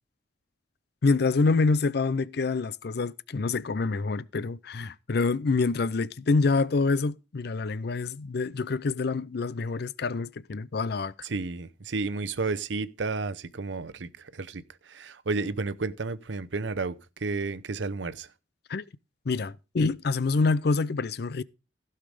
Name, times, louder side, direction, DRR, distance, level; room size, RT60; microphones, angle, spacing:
voice 1, 1.0-11.1 18.7-18.8 19.3-21.4, left 4 dB, 60° left, 0.5 m, -26 dB
voice 2, 11.2-18.3, right 3 dB, 80° right, 0.7 m, -32 dB
15.5 x 5.7 x 4.9 m
head